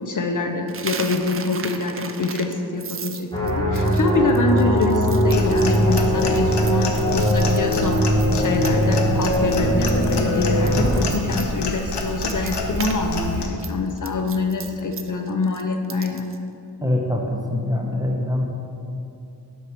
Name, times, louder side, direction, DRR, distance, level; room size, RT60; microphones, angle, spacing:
voice 1, 0.0-16.3, left 3 dB, 50° left, 4 dB, 0.5 m, -25 dB
Coin (dropping), 0.7-9.0 9.2-9.6 9.9-13.0 13.2-16.4, right 6 dB, 35° right, 0.4 m, -36 dB
sound 1, 3.3-11.0, equal, 10° left, 1.4 m, -20 dB
Clock, 5.3-13.5, left 2 dB, 90° left, 0.8 m, -29 dB
voice 2, 16.8-18.4, left 1 dB, 10° right, 0 dB, 0.8 m, -23 dB
5.8 x 4.7 x 6.0 m, 2.7 s
wide cardioid pair, 85°, 39 cm